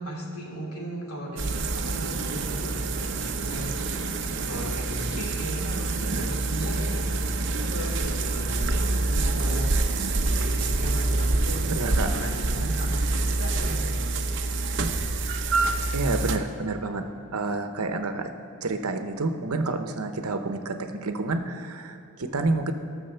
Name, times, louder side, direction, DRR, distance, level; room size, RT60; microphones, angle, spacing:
voice 1, 0.0-4.0 4.3-14.3, equal, 90° left, -2 dB, 2.9 m, -37 dB
sound 1, 1.4-16.4, right 2 dB, 55° right, 0.8 m, -26 dB
voice 2, 11.7-12.2 15.9-18.3 18.6-22.7, right 3 dB, 80° right, 7 dB, 0.9 m, -29 dB
16.5 x 6.5 x 6.8 m, 2.8 s
head